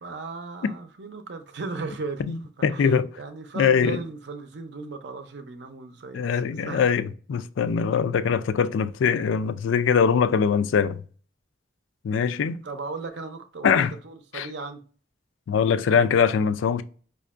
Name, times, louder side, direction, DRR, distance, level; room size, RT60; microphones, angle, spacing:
voice 1, 0.0-6.8 12.6-14.8, right 4 dB, 65° right, 0.6 m, -37 dB
voice 2, 2.2-3.1 3.6-4.0 6.1-11.0 12.0-12.6 13.6-13.9 14.3-14.5 15.5-16.8, left 6 dB, 90° left, 0.3 m, -22 dB
5.1 x 2.4 x 2.4 m
head